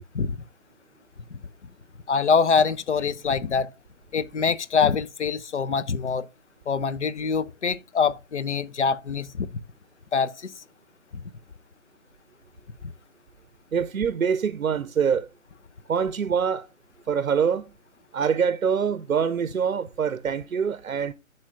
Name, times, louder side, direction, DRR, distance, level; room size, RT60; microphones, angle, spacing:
voice 1, 2.1-3.7 4.1-6.3 6.7-9.6 10.1-10.5 11.2-11.3, left 5 dB, 55° left, 0.6 m, -24 dB
voice 2, 13.7-15.3 15.9-16.7 17.1-17.7 18.1-21.1, right 7 dB, 70° right, 0.6 m, -24 dB
12.0 x 4.5 x 2.4 m
figure-of-eight pair, 160°, 42 cm